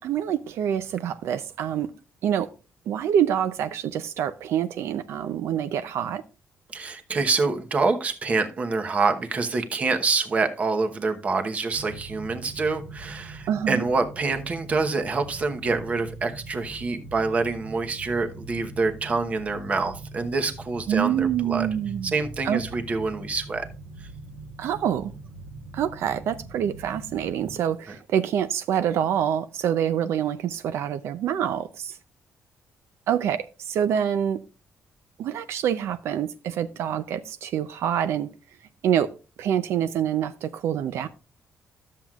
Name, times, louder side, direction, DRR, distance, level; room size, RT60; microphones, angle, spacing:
voice 1, 0.0-1.9 2.2-2.5 2.9-6.2 13.5-13.9 20.9-22.1 22.4-22.6 24.6-25.1 25.7-32.0 33.1-34.4 35.2-38.3 38.8-39.1 39.4-41.1, right 9 dB, 80° right, 0.5 m, -26 dB
voice 2, 6.7-21.7 22.1-23.7 24.0-24.1, right 4 dB, 30° right, 1.0 m, -26 dB
sound 1, 11.7-27.6, right 3 dB, 50° right, 1.2 m, -41 dB
12.5 x 7.4 x 2.4 m
cardioid pair, 155°, 4 cm